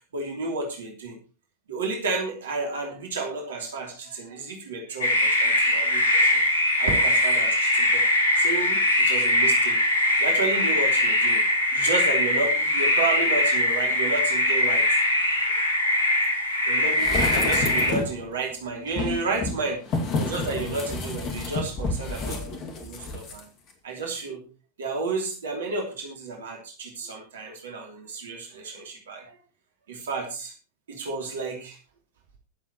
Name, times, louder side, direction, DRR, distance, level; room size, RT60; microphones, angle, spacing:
voice 1, 0.1-1.1 1.7-6.4 6.8-8.0 8.4-9.8 10.2-11.4 11.7-14.8 16.7-19.8 20.2-22.5 22.8-23.4 23.8-24.4 24.8-29.3 29.9-30.5 30.9-31.8, right 3 dB, 65° right, 2 dB, 2.9 m, -31 dB
sound 1, 5.0-17.9, left 1 dB, 70° left, 2.9 m, -22 dB
sound 2, 16.9-18.2 18.9-23.4 23.7-23.8, left 3 dB, 35° left, 2.2 m, -30 dB
22.0 x 7.4 x 3.0 m, 0.35 s
figure-of-eight pair, 90°, 0 cm